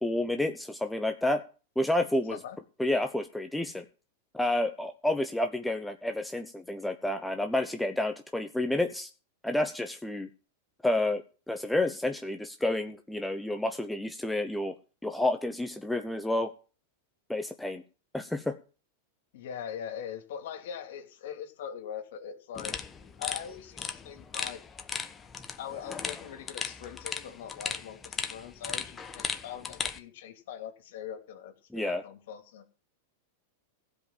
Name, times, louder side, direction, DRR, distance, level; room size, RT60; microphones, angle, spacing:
voice 1, 0.0-1.4 1.8-2.4 2.8-3.8 4.3-9.1 9.4-10.3 10.8-14.7 15.0-16.5 17.3-17.8 18.1-18.6 31.7-32.0, left 1 dB, 5° left, 6 dB, 0.9 m, -30 dB
voice 2, 19.3-22.8 23.2-24.6 25.6-32.7, left 8 dB, 70° left, 6 dB, 2.8 m, -41 dB
sound 1, 22.6-30.0, left 6 dB, 20° left, 1.2 m, -37 dB
15.5 x 5.3 x 7.4 m, 0.37 s
hypercardioid pair, 120°, 0 cm